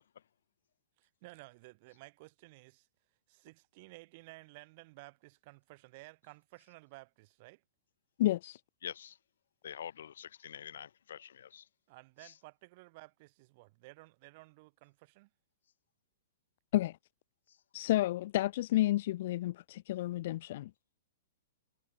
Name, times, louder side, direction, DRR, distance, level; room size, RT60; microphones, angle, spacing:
voice 1, 1.0-2.9 3.3-7.6 11.9-15.3, right 24 dB, 45° right, 4.4 m, -55 dB
voice 2, 8.2-8.6 16.7-17.0 17.7-20.7, left 15 dB, 55° left, 0.9 m, -31 dB
voice 3, 8.8-9.2 9.6-11.7 12.2-12.3 17.5-17.6, left 9 dB, 80° left, 5.4 m, -46 dB
hypercardioid pair, 145°, 0 cm